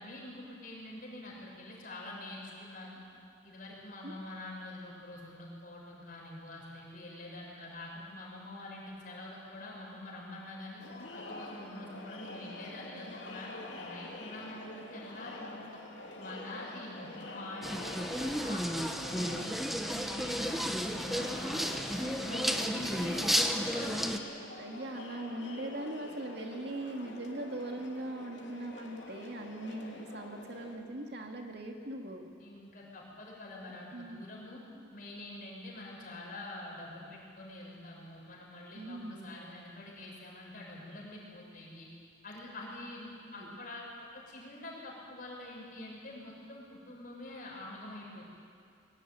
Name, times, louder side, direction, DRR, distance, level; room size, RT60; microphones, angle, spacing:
voice 1, 0.0-3.0 3.4-10.8 11.2-15.8 16.2-19.5 19.8-24.1 28.3-28.6 32.4-34.6 34.9-41.9 42.2-43.8 44.1-48.2, left 1 dB, 45° left, -3 dB, 6.9 m, -45 dB
Crowd, 10.8-30.8, left 2 dB, 70° left, 3.0 m, -46 dB
sound 1, 17.6-24.2, equal, ahead, 1.0 m, -32 dB
voice 2, 21.4-21.7 23.5-23.6 24.6-32.3 33.9-34.3 38.7-39.3 43.3-43.6, right 1 dB, 55° right, 2 dB, 2.1 m, -41 dB
22.5 x 18.0 x 9.5 m, 2.4 s
head